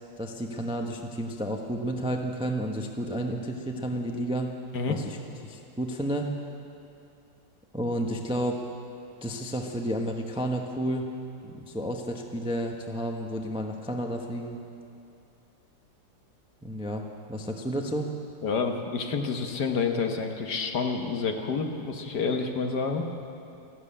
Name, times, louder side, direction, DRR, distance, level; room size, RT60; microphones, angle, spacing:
voice 1, 0.2-4.5 4.9-5.2 5.4-6.3 7.7-8.6 9.2-11.1 11.4-14.6 16.6-17.0 17.3-18.1, right 1 dB, 5° right, 2 dB, 0.5 m, -31 dB
voice 2, 18.4-23.0, left 5 dB, 65° left, 4 dB, 1.7 m, -28 dB
14.0 x 12.5 x 8.5 m, 2.6 s
omnidirectional pair, 2.0 m